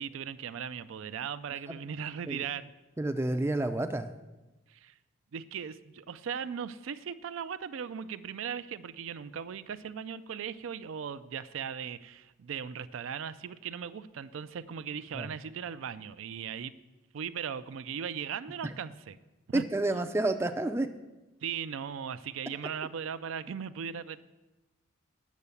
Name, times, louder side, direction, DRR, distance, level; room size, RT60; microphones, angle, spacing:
voice 1, 0.0-2.7 4.7-5.0 5.3-16.7 17.1-19.2 19.5-19.6 21.4-24.2, right 7 dB, 75° right, 13 dB, 0.4 m, -38 dB
voice 2, 3.0-4.1 15.1-15.3 18.6-18.7 19.5-20.9, right 2 dB, 10° right, 8 dB, 0.4 m, -29 dB
8.3 x 6.6 x 6.9 m, 1.1 s
head